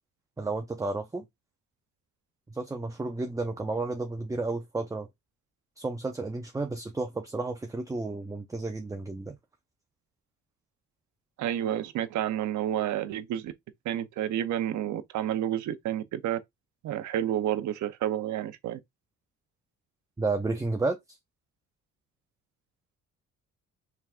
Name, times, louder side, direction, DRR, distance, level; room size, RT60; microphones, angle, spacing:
voice 1, 0.4-1.3 2.5-5.1 5.8-9.4 20.2-21.2, right 3 dB, 10° right, 0.6 m, -32 dB
voice 2, 11.4-13.5 13.8-16.4 16.8-18.8, right 11 dB, 70° right, 0.6 m, -30 dB
4.6 x 3.5 x 2.4 m
cardioid pair, 90°, 30 cm